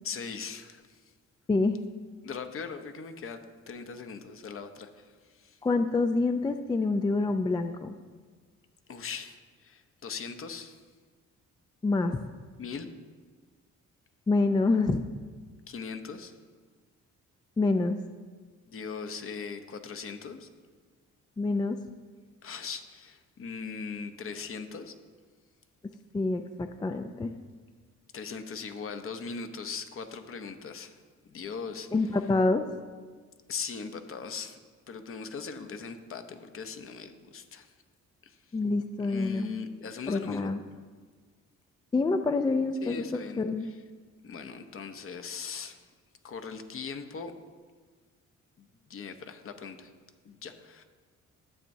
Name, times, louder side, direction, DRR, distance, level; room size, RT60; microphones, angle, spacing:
voice 1, 0.0-1.0 2.2-5.6 8.9-10.8 12.6-12.9 15.7-16.3 18.7-20.5 22.4-24.9 28.1-31.0 31.3-31.9 33.5-34.6 34.9-37.7 38.2-38.4 39.0-40.5 42.8-43.8 44.2-45.8 46.2-47.3 48.6-49.9 50.2-50.8, left 5 dB, 45° left, 8 dB, 0.8 m, -40 dB
voice 2, 1.5-1.8 5.6-7.9 11.8-12.2 14.3-15.1 17.6-18.0 21.4-21.8 26.1-27.3 31.9-32.6 38.5-39.5 40.1-40.6 41.9-43.0 43.4-43.7, left 3 dB, 15° left, 8 dB, 0.3 m, -26 dB
12.0 x 7.4 x 2.7 m, 1.5 s
cardioid pair, 90°, 30 cm